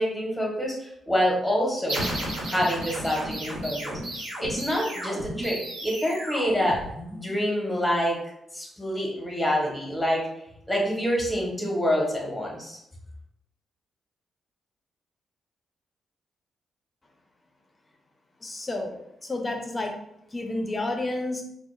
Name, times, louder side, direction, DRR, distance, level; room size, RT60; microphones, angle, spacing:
voice 1, 0.0-2.0 2.4-6.8 7.1-8.2 8.5-10.3 10.7-12.8, equal, 10° left, -1 dB, 0.9 m, -27 dB
sound 1, 1.9-7.3, right 1 dB, 90° right, 0.8 m, -33 dB
voice 2, 18.4-19.9 20.3-21.4, left 2 dB, 30° left, 2 dB, 0.6 m, -30 dB
2.1 x 2.0 x 3.1 m, 0.76 s
hypercardioid pair, 40°, 0 cm